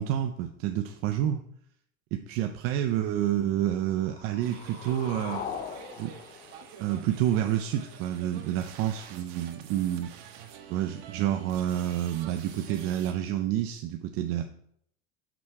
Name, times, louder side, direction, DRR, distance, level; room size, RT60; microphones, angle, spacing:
voice 1, 0.0-1.4 2.1-5.4 6.0-6.1 6.8-10.1 10.7-14.4, right 11 dB, 45° right, 6 dB, 0.5 m, -29 dB
sound 1, 3.7-7.7, left 7 dB, 25° left, 0.4 m, -41 dB
sound 2, 4.4-13.1, right 9 dB, 65° right, 1.2 m, -48 dB
6.3 x 6.1 x 4.5 m, 0.68 s
cardioid pair, 165°, 32 cm